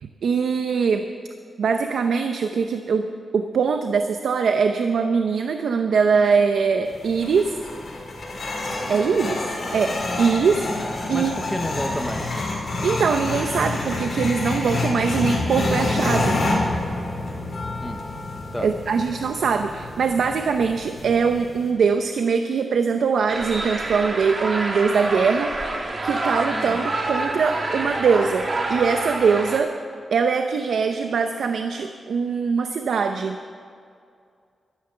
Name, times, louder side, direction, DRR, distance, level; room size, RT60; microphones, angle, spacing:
voice 1, 0.0-1.0 1.6-3.1 3.3-7.5 8.9-9.4 9.7-9.9 10.2-10.6 11.1-11.3 12.8-16.4 18.6-25.5 26.0-29.7 30.1-33.4, right 5 dB, 85° right, 6 dB, 0.7 m, -22 dB
sound 1, 6.9-21.7, left 2 dB, 50° left, 4.7 m, -28 dB
voice 2, 11.1-12.3 17.8-18.0 18.5-18.7 26.5-27.0, equal, 5° left, 6 dB, 1.0 m, -31 dB
sound 2, 23.3-29.6, right 2 dB, 35° right, 1.7 m, -27 dB
13.0 x 12.5 x 6.8 m, 2.3 s
wide cardioid pair, 135°, 0 cm